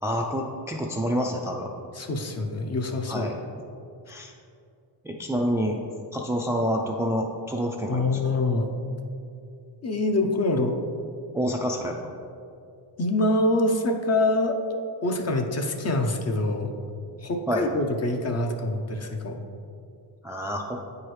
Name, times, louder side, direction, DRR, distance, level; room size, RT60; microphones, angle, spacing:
voice 1, 0.0-1.7 3.1-3.3 4.1-4.3 5.0-5.8 6.1-8.4 11.3-12.0 17.5-17.7 20.2-20.8, equal, 5° right, 1 dB, 0.3 m, -28 dB
voice 2, 1.9-3.3 7.9-8.7 9.8-10.8 13.0-14.6 15.0-16.7 17.2-19.4, left 2 dB, 35° left, 4 dB, 0.6 m, -25 dB
8.4 x 4.8 x 3.1 m, 2.5 s
cardioid pair, 95°, 45 cm